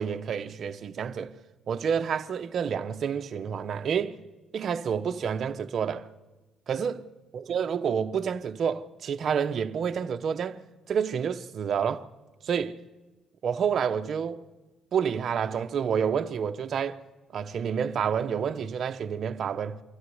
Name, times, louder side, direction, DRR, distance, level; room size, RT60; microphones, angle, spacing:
voice 1, 0.0-1.3 1.7-4.2 4.5-6.1 6.7-7.0 7.3-10.6 10.9-12.1 12.4-12.8 13.4-14.4 14.9-17.0 17.3-19.8, right 7 dB, 50° right, 0.8 m, -29 dB
24.5 x 14.5 x 7.9 m
cardioid pair, 120°, 0 cm